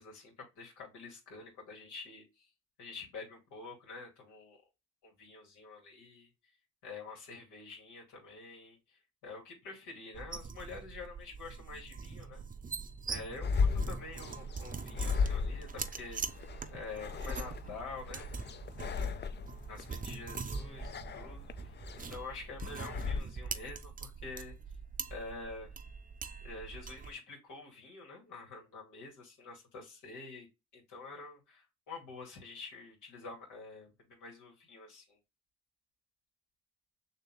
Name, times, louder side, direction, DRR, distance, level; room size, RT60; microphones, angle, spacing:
voice 1, 0.0-2.5 2.8-4.6 5.0-6.3 6.8-12.4 13.1-16.2 16.7-18.4 19.7-21.8 22.1-24.6 25.1-25.7 26.4-30.5 30.7-35.2, left 3 dB, 85° left, 2.4 m, -47 dB
sound 1, 10.1-27.1, right 5 dB, 25° right, 0.6 m, -43 dB
sound 2, 13.4-23.2, left 5 dB, 35° left, 0.5 m, -36 dB
6.6 x 2.8 x 2.3 m
cardioid pair, 90°, 30 cm